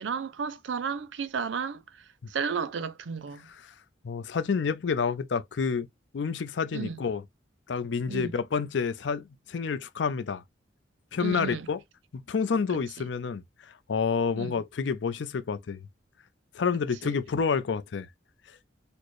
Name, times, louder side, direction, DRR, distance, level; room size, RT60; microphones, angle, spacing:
voice 1, 0.0-1.8 2.3-3.5 6.7-7.0 8.1-8.3 11.2-11.7 14.4-14.5 17.0-17.1, right 6 dB, 75° right, 0.5 m, -33 dB
voice 2, 4.0-5.9 6.1-7.2 7.7-10.4 11.1-11.8 12.1-13.4 13.9-15.9 16.5-18.1, left 5 dB, 70° left, 0.5 m, -29 dB
4.2 x 2.1 x 3.0 m
head